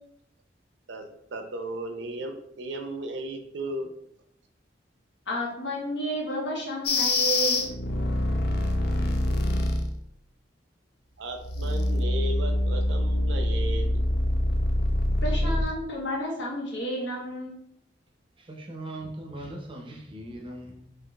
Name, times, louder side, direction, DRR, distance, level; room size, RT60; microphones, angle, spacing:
voice 1, 1.3-3.9 11.2-13.9, right 2 dB, 75° right, 0.6 m, -35 dB
voice 2, 5.3-7.6 15.2-17.6, right 1 dB, 85° left, 1.1 m, -31 dB
sound 1, 6.9-9.9 11.4-15.6, left 1 dB, 60° left, 0.4 m, -25 dB
voice 3, 18.4-21.0, right 1 dB, 30° right, 0.5 m, -40 dB
3.8 x 2.9 x 2.3 m
head